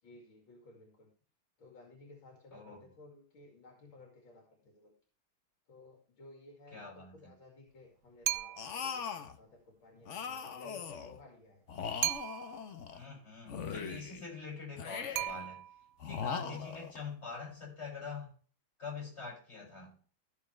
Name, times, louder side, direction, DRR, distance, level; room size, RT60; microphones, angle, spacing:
voice 1, 0.0-1.1 1.6-4.9 5.7-11.6, left 2 dB, 70° left, 3.0 m, -56 dB
voice 2, 6.7-7.3 12.9-15.6 16.0-18.3 18.8-19.9, left 4 dB, 30° left, 6.8 m, -44 dB
sound 1, 8.2-8.9 12.0-12.7 15.1-15.9, right 13 dB, 75° right, 1.4 m, -36 dB
sound 2, 8.6-9.4 10.1-11.2 11.7-13.0 13.5-14.2 14.8-15.5 16.0-17.0, left 6 dB, 50° left, 0.9 m, -40 dB
14.5 x 7.1 x 3.2 m
omnidirectional pair, 2.2 m